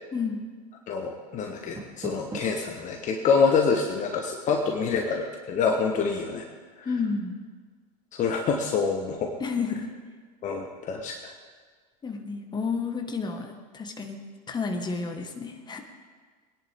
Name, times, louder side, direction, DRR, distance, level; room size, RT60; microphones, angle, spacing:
voice 1, 0.1-0.5 6.9-7.3 9.4-9.9 12.0-14.2 14.5-15.8, left 4 dB, 20° left, 4 dB, 1.7 m, -31 dB
voice 2, 0.9-6.4 6.8-6.9 8.1-9.3 10.4-11.3, left 5 dB, 35° left, 2 dB, 1.3 m, -26 dB
Door, 1.5-2.7, right 3 dB, 15° right, 3.4 m, -40 dB
21.5 x 10.5 x 3.7 m, 1.5 s
hypercardioid pair, 90°, 21 cm